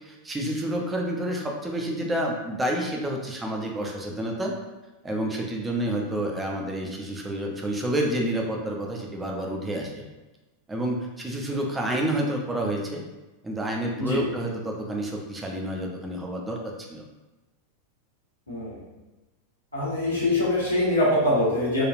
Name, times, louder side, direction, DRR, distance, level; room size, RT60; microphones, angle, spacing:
voice 1, 0.0-4.5 5.0-10.0 10.7-13.0 13.4-16.6 16.9-17.0, right 1 dB, 10° right, 0 dB, 0.5 m, -29 dB
voice 2, 18.5-18.8 19.7-21.8, left 1 dB, 80° left, -8 dB, 1.1 m, -23 dB
3.2 x 2.3 x 2.5 m, 1.1 s
figure-of-eight pair, 90°, 0 cm